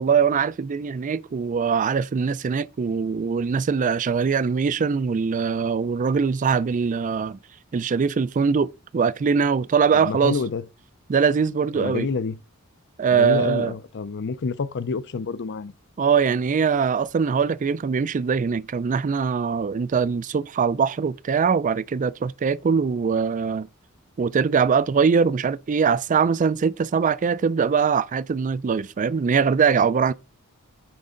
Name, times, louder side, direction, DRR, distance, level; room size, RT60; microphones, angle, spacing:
voice 1, 0.0-7.4 7.7-10.4 11.1-12.1 13.0-13.7 16.0-23.7 24.2-30.1, right 6 dB, 35° right, 0.3 m, -22 dB
voice 2, 9.9-10.7 11.7-12.4 13.1-15.7, left 4 dB, 55° left, 0.5 m, -28 dB
9.2 x 5.3 x 3.8 m
head